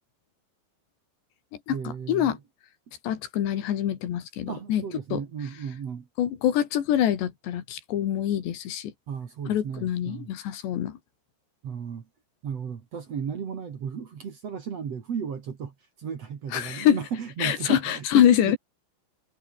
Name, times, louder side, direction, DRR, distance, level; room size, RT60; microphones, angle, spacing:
voice 1, 1.7-2.4 4.5-6.1 9.1-10.3 11.6-12.1 12.4-15.7 16.0-18.6, right 7 dB, 45° right, 2.6 m, -35 dB
voice 2, 3.0-4.8 5.1-5.2 6.2-8.9 9.5-11.0 16.5-17.0 17.4-18.6, left 10 dB, 80° left, 4.4 m, -24 dB
omnidirectional pair, 5.0 m